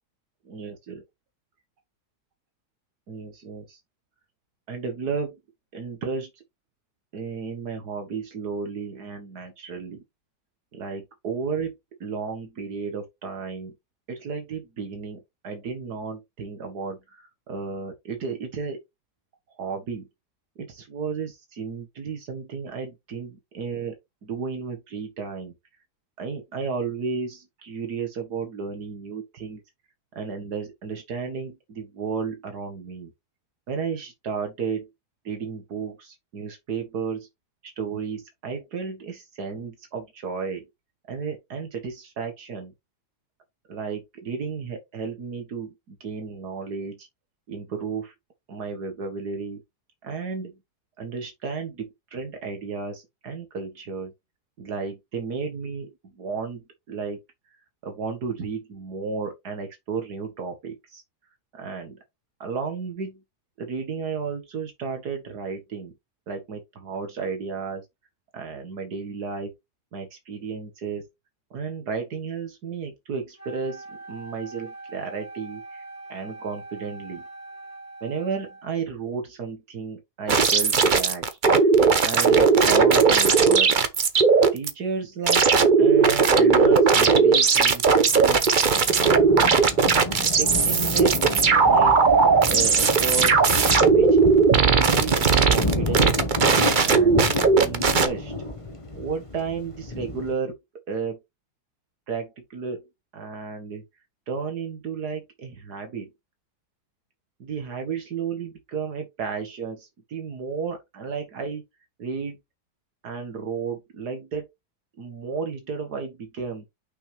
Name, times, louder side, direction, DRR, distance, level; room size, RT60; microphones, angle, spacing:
voice 1, 0.5-1.0 3.1-3.8 4.7-5.4 5.7-6.4 7.1-10.0 10.7-13.7 14.1-18.8 19.6-20.1 20.6-24.0 24.2-25.6 26.2-29.6 30.2-33.1 33.7-34.9 35.2-37.3 37.6-40.7 41.1-42.7 43.7-47.1 47.5-48.1 48.5-49.6 50.0-50.6 51.0-54.1 54.6-57.2 57.8-61.0 61.5-62.0 62.4-63.2 63.6-65.9 66.3-67.8 68.3-69.5 69.9-71.1 71.5-75.8 76.1-77.3 78.0-81.3 82.0-83.8 84.5-85.5 85.8-87.9 88.2-88.4 90.3-91.1 91.6-92.0 92.5-93.4 93.9-94.2 94.6-96.2 96.6-98.3 98.9-100.6 100.9-101.2 102.1-102.9 103.1-103.8 104.3-106.1 107.4-111.6 112.0-112.4 113.0-114.5 115.0-116.7, right 5 dB, 85° right, 2.1 m, -33 dB
Wind instrument woodwind instrument, 73.4-78.9, right 2 dB, 10° right, 2.7 m, -42 dB
sound 1, 80.3-84.7 85.3-98.1, right 5 dB, 40° right, 0.9 m, -18 dB
Thunder, 88.0-100.3, left 2 dB, 20° left, 1.2 m, -30 dB
6.1 x 6.0 x 3.4 m
omnidirectional pair, 1.7 m